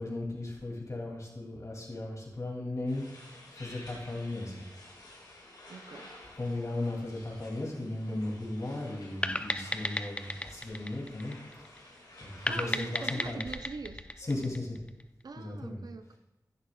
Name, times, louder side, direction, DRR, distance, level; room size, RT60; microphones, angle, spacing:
voice 1, 0.0-3.0 3.5-4.7 6.4-11.7 12.2-13.4 14.2-14.8 15.3-15.8, left 2 dB, 50° left, 2.5 m, -36 dB
sound 1, 2.9-13.4, left 1 dB, 90° left, 2.0 m, -52 dB
voice 2, 5.7-6.2 12.5-14.1 15.2-16.2, right 4 dB, 75° right, 0.5 m, -43 dB
sound 2, 9.2-11.8 12.5-15.0, left 1 dB, 15° left, 0.5 m, -34 dB
11.0 x 11.0 x 2.3 m
wide cardioid pair, 70°, 7 cm